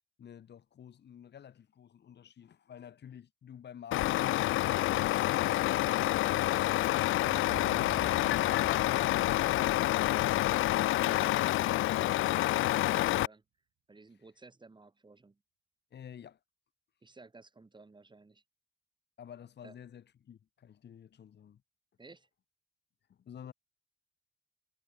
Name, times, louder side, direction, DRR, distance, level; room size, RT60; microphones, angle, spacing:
voice 1, 0.2-4.7 15.9-16.4 19.2-21.6 23.1-23.5, left 9 dB, 60° left, 6.4 m, -51 dB
Truck, 3.9-13.3, left 16 dB, 85° left, 1.0 m, -28 dB
sound 1, 7.1-11.7, right 11 dB, 70° right, 5.5 m, -51 dB
voice 2, 11.0-13.4 13.9-15.4 17.0-18.4 19.6-19.7 22.0-22.3, right 3 dB, 25° right, 6.7 m, -55 dB
cardioid pair, 90°, 20 cm